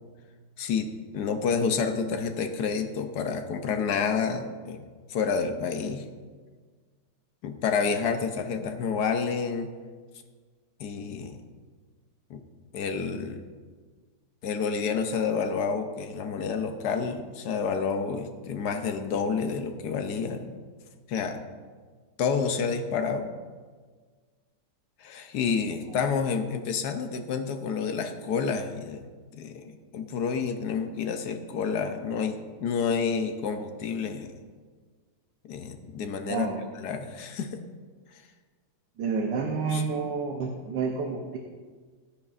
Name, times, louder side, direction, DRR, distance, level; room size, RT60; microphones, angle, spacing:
voice 1, 0.6-0.9 1.1-4.8 5.1-6.0 7.4-9.7 10.8-11.4 12.3-12.4 12.7-13.4 14.4-20.5 21.1-21.4 22.2-23.3 25.0-29.0 29.3-34.3 35.4-36.5 36.7-37.6 39.7-39.8, left 5 dB, 70° left, 7 dB, 1.2 m, -29 dB
voice 2, 36.3-36.6 39.0-41.4, right 5 dB, 75° right, 2 dB, 1.4 m, -29 dB
12.0 x 10.5 x 2.5 m, 1.5 s
omnidirectional pair, 2.0 m